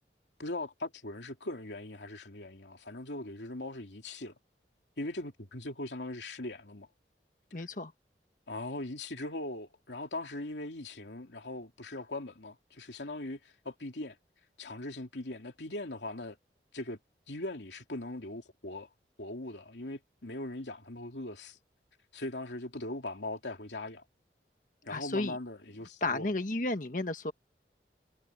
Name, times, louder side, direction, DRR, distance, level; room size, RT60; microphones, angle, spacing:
voice 1, 0.4-4.3 5.0-6.9 7.6-7.7 8.5-14.2 14.6-16.4 16.7-17.0 17.3-18.9 19.2-21.6 22.1-24.0 24.9-26.3, left 2 dB, 85° left, 2.9 m, -40 dB
voice 2, 7.5-7.9 24.9-25.3 26.0-27.3, left 2 dB, 50° left, 1.4 m, -32 dB
head